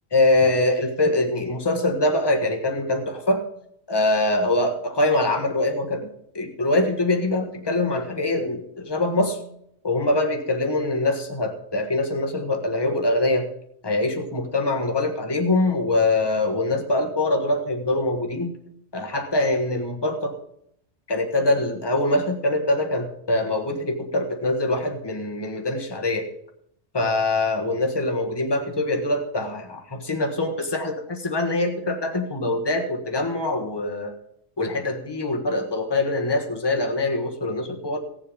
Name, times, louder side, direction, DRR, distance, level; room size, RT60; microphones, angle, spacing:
voice 1, 0.1-3.4 3.9-6.1 6.3-9.4 9.8-13.5 13.8-18.5 18.9-20.4 21.1-26.3 26.9-34.1 34.6-38.0, left 2 dB, 20° left, 3 dB, 1.4 m, -23 dB
16.5 x 7.5 x 5.1 m, 0.73 s
omnidirectional pair, 1.3 m